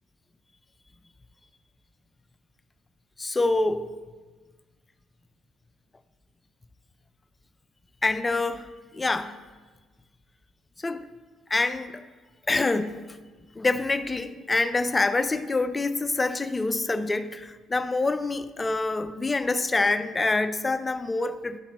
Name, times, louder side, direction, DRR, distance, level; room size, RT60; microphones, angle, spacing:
voice 1, 3.2-3.9 8.0-9.4 10.8-11.0 11.5-12.0 12.5-13.1 13.6-21.6, left 3 dB, 25° left, 0.4 m, -26 dB
11.0 x 4.2 x 3.0 m
hypercardioid pair, 55°, 0 cm